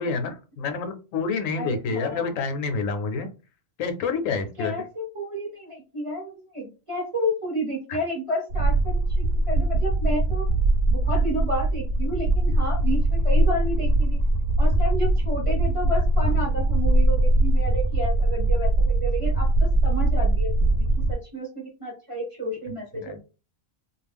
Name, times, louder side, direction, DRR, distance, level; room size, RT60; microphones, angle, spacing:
voice 1, 0.0-3.3 3.8-4.7 7.9-8.0 16.4-16.5 22.9-23.2, left 4 dB, 75° left, 7 dB, 0.9 m, -28 dB
voice 2, 1.6-2.3 4.6-10.4 10.9-14.2 14.6-23.2, equal, 30° right, -3 dB, 0.7 m, -31 dB
sound 1, 8.5-21.1, right 2 dB, 75° right, 0.9 m, -21 dB
2.3 x 2.1 x 3.4 m, 0.32 s
omnidirectional pair, 1.4 m